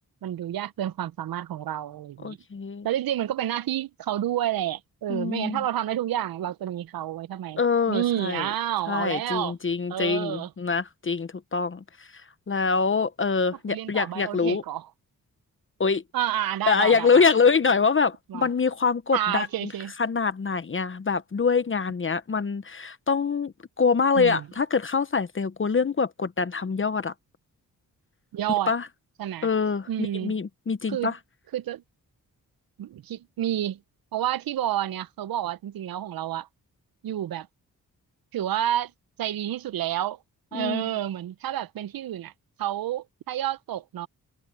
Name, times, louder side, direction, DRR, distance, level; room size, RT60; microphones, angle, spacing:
voice 1, 0.2-2.4 2.8-7.6 7.9-9.5 9.9-10.5 13.7-14.9 16.1-17.3 18.3-18.5 19.1-19.9 24.1-24.5 28.3-28.7 29.2-29.5 29.9-30.3 30.9-31.1 31.5-31.8 32.8-33.8 34.1-36.5 37.0-37.5 38.3-38.9 39.2-40.2 40.5-42.3 42.6-44.1, right 12 dB, 80° right, 0.7 m, -29 dB
voice 2, 2.2-2.9 5.1-5.6 7.6-8.5 8.9-11.8 12.5-14.6 15.8-16.0 16.7-19.5 20.0-27.1 28.7-28.8 29.4-29.9 30.2-31.1 40.5-40.8, left 5 dB, 35° left, 1.0 m, -24 dB
cardioid pair, 80°, 35 cm